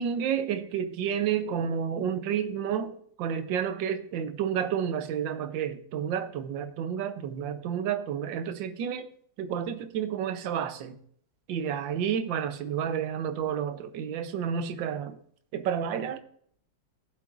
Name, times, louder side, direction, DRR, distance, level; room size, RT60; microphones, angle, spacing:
voice 1, 0.0-9.1 9.4-11.0 11.5-15.2 15.5-16.2, right 8 dB, 90° right, 1.5 m, -30 dB
15.5 x 7.6 x 2.5 m
omnidirectional pair, 2.0 m